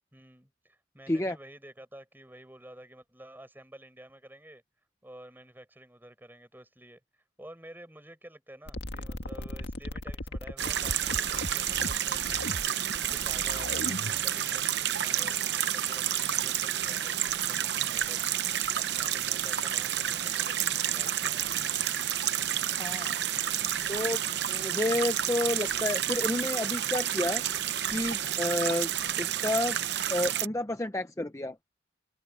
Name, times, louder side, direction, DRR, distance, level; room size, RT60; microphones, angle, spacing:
voice 1, 0.1-4.6 5.0-7.0 7.4-12.5 13.0-21.6, right 1 dB, 10° right, 7.2 m, -51 dB
sound 1, 8.7-14.3, left 1 dB, 65° left, 2.1 m, -37 dB
sound 2, 10.6-30.5, right 10 dB, 60° right, 0.8 m, -30 dB
voice 2, 22.8-23.2 23.9-24.2 24.5-27.4 27.9-28.9 29.2-29.8 30.1-31.6, left 1 dB, 15° left, 0.7 m, -30 dB
open air
head